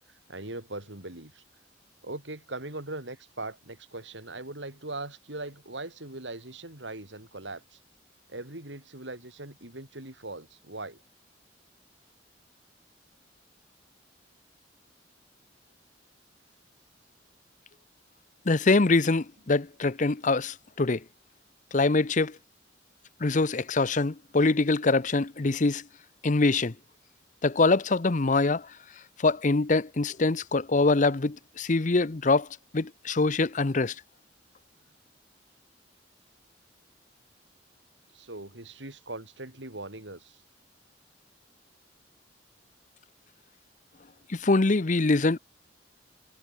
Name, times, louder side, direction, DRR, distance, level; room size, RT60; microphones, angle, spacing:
voice 1, 0.3-1.4 2.0-7.8 8.3-11.0 38.1-40.4, right 2 dB, 75° right, 5.1 m, -40 dB
voice 2, 18.5-21.0 21.7-22.4 23.2-25.8 26.2-26.7 27.4-28.7 29.2-32.5 32.7-33.9 44.3-45.4, left 3 dB, 45° left, 0.8 m, -24 dB
head